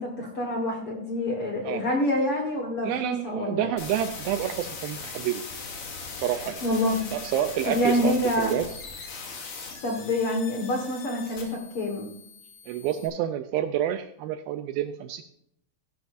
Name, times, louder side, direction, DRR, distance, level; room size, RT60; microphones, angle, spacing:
voice 1, 0.0-3.7 6.6-7.1 7.7-8.6 9.8-12.1, left 1 dB, 50° left, 1 dB, 1.8 m, -27 dB
voice 2, 2.8-5.4 6.2-6.6 7.1-8.7 12.7-15.2, right 11 dB, 80° right, 9 dB, 2.2 m, -28 dB
sound 1, 3.8-13.1, left 4 dB, 70° left, 4.6 m, -40 dB
15.0 x 12.0 x 2.6 m, 0.73 s
omnidirectional pair, 4.8 m